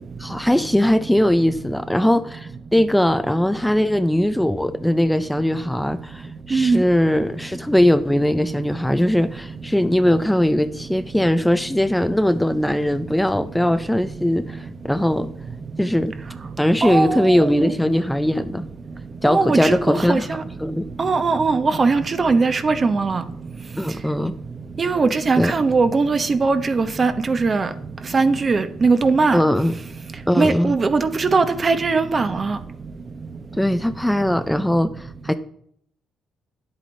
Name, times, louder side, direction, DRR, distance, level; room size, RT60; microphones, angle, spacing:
voice 1, 0.2-15.3 15.8-16.1 16.6-18.6 19.2-21.0 23.8-24.3 25.4-25.5 29.3-29.8 30.3-30.7 33.5-35.3, left 1 dB, 5° left, 0.5 m, -20 dB
voice 2, 6.5-6.8 16.8-17.7 19.2-19.8 20.1-20.2 21.0-23.2 24.8-27.7 28.1-29.4 30.4-32.6, right 4 dB, 35° right, 1.0 m, -19 dB
9.9 x 8.2 x 4.0 m
cardioid pair, 90°, 0 cm